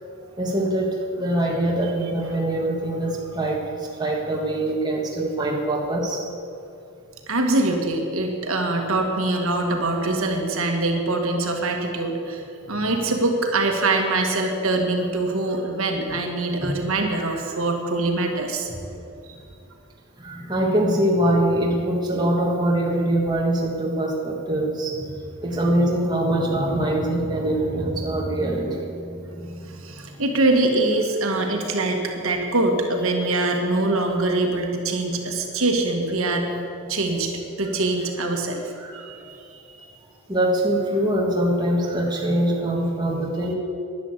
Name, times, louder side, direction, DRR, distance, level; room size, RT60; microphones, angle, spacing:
voice 1, 0.4-6.2 16.6-16.7 17.2-17.4 20.2-25.1 25.4-30.2 36.8-36.9 40.3-43.5, right 1 dB, 20° right, -2 dB, 1.6 m, -23 dB
voice 2, 7.3-18.7 29.8-36.5 36.9-37.3 37.6-39.8, right 2 dB, 70° right, 2 dB, 1.7 m, -23 dB
11.0 x 10.5 x 8.2 m, 2.6 s
head